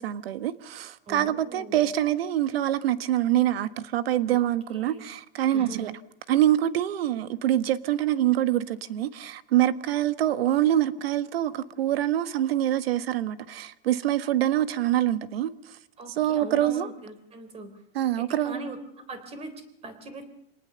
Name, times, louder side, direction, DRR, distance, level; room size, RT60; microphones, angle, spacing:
voice 1, 0.0-5.9 6.3-15.5 16.2-16.9 17.9-18.6, right 12 dB, 85° right, 1.4 m, -25 dB
voice 2, 1.1-1.9 4.3-4.4 4.7-5.1 5.5-5.9 16.0-17.7 18.2-20.2, right 2 dB, 20° right, 3.6 m, -41 dB
26.5 x 19.0 x 6.9 m
supercardioid pair, 160°, 29 cm